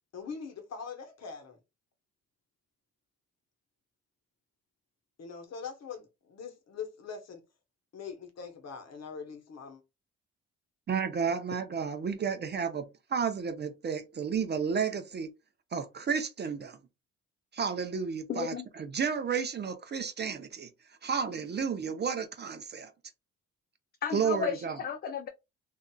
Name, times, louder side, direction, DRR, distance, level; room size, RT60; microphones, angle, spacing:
voice 1, 0.1-1.6 5.2-7.4 7.9-9.8, left 6 dB, 60° left, 0.9 m, -42 dB
voice 2, 10.9-15.3 15.7-16.8 17.5-20.7 21.0-22.9 24.1-24.8, right 6 dB, 35° right, 0.5 m, -32 dB
voice 3, 18.3-18.7 24.0-25.3, left 7 dB, 35° left, 0.4 m, -33 dB
2.7 x 2.4 x 2.2 m
cardioid pair, 90°, 30 cm